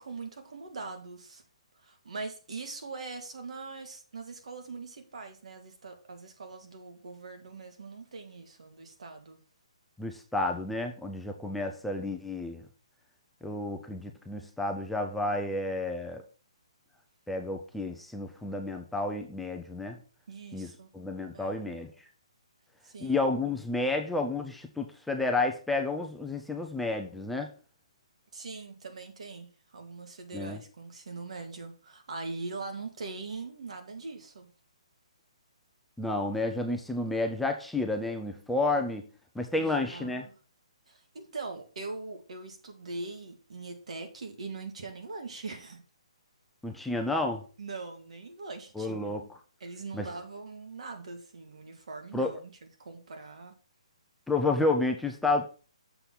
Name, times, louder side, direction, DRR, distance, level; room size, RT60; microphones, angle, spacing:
voice 1, 0.0-1.4 1.8-9.4 20.3-20.9 21.3-21.6 22.8-23.2 28.3-34.5 39.6-40.3 40.9-45.8 47.6-49.1 49.6-52.4 52.8-53.6, right 3 dB, 70° right, 1.9 m, -42 dB
voice 2, 10.0-12.6 13.4-16.2 17.3-20.0 20.5-20.7 20.9-21.9 23.0-27.5 30.3-30.6 36.0-39.0 39.4-40.3 46.6-47.4 48.8-49.2 49.9-50.1 52.1-52.3 54.3-55.5, left 2 dB, ahead, 0.4 m, -30 dB
6.8 x 4.0 x 6.1 m
hypercardioid pair, 170°, 4 cm